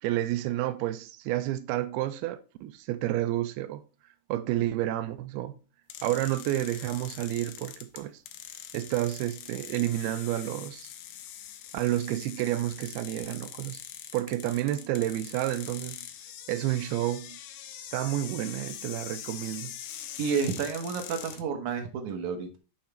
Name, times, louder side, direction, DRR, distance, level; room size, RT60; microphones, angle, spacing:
voice 1, 0.0-3.8 4.3-5.6 6.0-8.2 8.7-10.9 11.7-13.8 14.1-16.1 16.5-17.4 17.9-19.8, right 14 dB, 90° right, 2.6 m, -30 dB
sound 1, 5.9-21.4, left 10 dB, 75° left, 2.5 m, -43 dB
voice 2, 20.2-22.6, right 6 dB, 60° right, 2.4 m, -30 dB
7.1 x 5.9 x 4.2 m
omnidirectional pair, 4.4 m